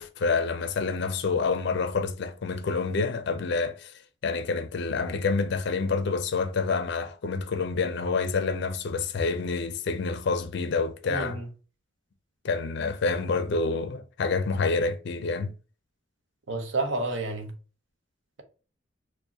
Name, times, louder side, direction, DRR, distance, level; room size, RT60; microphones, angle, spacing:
voice 1, 0.0-11.4 12.4-15.5, left 4 dB, 60° left, 0.4 m, -28 dB
voice 2, 11.1-11.5 16.5-17.5, right 2 dB, 65° right, 0.7 m, -30 dB
4.6 x 2.1 x 2.8 m
head